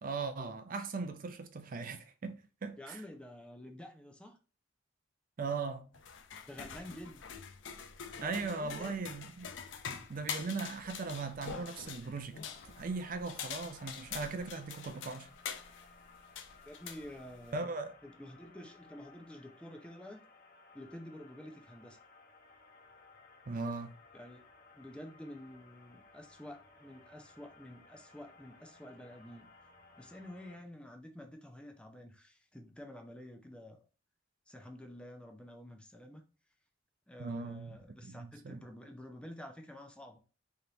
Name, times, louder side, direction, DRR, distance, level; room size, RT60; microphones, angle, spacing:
voice 1, 0.0-3.0 5.4-5.9 8.2-9.5 10.1-12.4 12.8-15.3 17.5-17.9 23.5-23.9 37.2-37.8 38.0-38.6, right 4 dB, 45° right, 0.4 m, -39 dB
voice 2, 2.8-4.4 6.4-7.2 8.2-9.0 16.7-17.6 18.0-20.2 20.7-22.0 24.1-24.4 24.7-29.5 30.0-33.8 34.5-36.2 37.1-40.2, left 1 dB, 5° left, 0.6 m, -49 dB
sound 1, 5.9-17.6, left 7 dB, 75° left, 0.5 m, -45 dB
sound 2, 12.4-30.6, left 3 dB, 50° left, 0.9 m, -60 dB
3.5 x 2.9 x 3.8 m
head